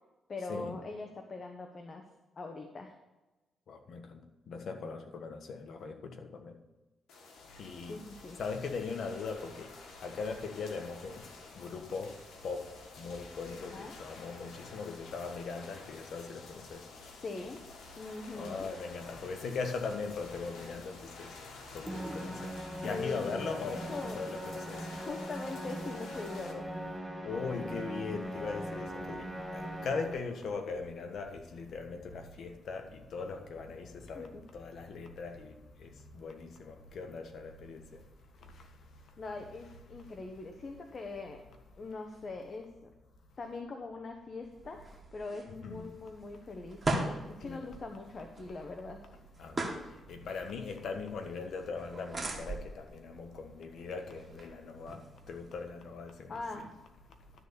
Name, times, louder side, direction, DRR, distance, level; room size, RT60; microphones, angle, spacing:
voice 1, 0.3-2.0 2.4-2.9 7.9-8.4 13.5-14.0 17.2-17.6 18.0-18.7 22.8-23.2 23.6-24.3 24.9-26.6 34.1-34.4 39.2-41.4 41.8-42.7 43.4-49.0 56.3-56.7, left 3 dB, 45° left, 1.0 m, -42 dB
voice 2, 3.7-6.6 7.4-7.9 8.4-16.9 18.3-25.0 27.2-38.0 38.4-39.1 45.6-45.9 47.4-47.7 49.4-56.3, left 4 dB, 70° left, 1.3 m, -40 dB
sound 1, 7.1-26.5, left 3 dB, 85° left, 1.7 m, -51 dB
Musical instrument, 21.9-30.4, equal, 5° right, 1.5 m, -40 dB
sound 2, 44.4-55.8, right 2 dB, 30° right, 2.0 m, -41 dB
12.0 x 4.1 x 6.8 m
cardioid pair, 80°, 0 cm